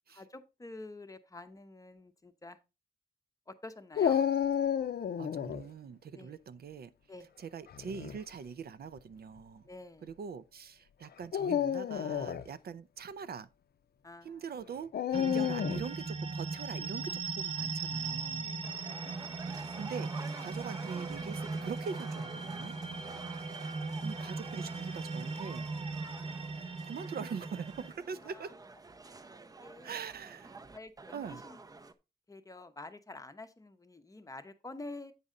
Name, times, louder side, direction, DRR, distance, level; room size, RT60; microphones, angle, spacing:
voice 1, 0.1-2.6 3.5-4.3 6.1-6.4 7.1-7.3 9.6-10.1 14.0-14.5 18.4-18.7 28.2-28.5 29.0-30.0 30.7-31.6 32.3-35.1, left 2 dB, 20° left, 0.6 m, -48 dB
Dog, 4.0-5.6 7.7-8.2 9.0-9.1 11.2-12.5 14.9-15.9, left 8 dB, 75° left, 0.5 m, -30 dB
voice 2, 5.2-6.9 7.4-9.7 10.0-13.5 14.2-18.5 19.5-22.7 24.0-25.7 26.8-28.6 29.8-30.6 31.1-31.4, right 6 dB, 70° right, 0.5 m, -43 dB
sound 1, 15.1-27.9, right 4 dB, 40° right, 0.9 m, -38 dB
sound 2, 18.6-31.9, right 3 dB, 25° right, 0.5 m, -49 dB
8.2 x 5.4 x 3.7 m
wide cardioid pair, 150°, 16 cm